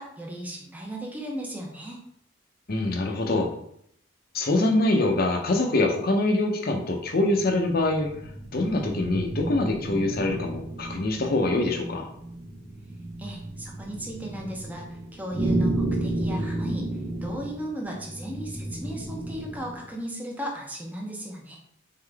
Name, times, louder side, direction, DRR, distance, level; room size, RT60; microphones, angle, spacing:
voice 1, 0.0-2.0 13.2-16.9 17.2-21.6, equal, 10° right, -1 dB, 0.7 m, -36 dB
voice 2, 2.7-3.5 4.3-8.1 8.5-12.1, left 2 dB, 50° left, 3 dB, 0.7 m, -24 dB
sound 1, 7.3-19.9, right 2 dB, 40° right, 1.3 m, -32 dB
3.8 x 3.7 x 3.4 m, 0.70 s
head